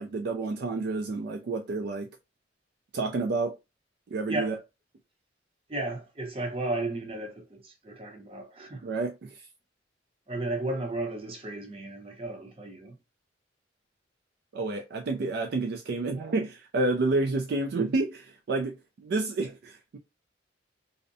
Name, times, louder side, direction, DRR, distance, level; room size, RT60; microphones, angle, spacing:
voice 1, 0.0-2.1 2.9-3.6 4.1-4.6 8.8-9.3 14.5-20.0, right 3 dB, 60° right, 0.4 m, -29 dB
voice 2, 5.7-8.8 10.3-12.9, right 2 dB, 30° right, 0.7 m, -34 dB
2.6 x 2.1 x 2.6 m
head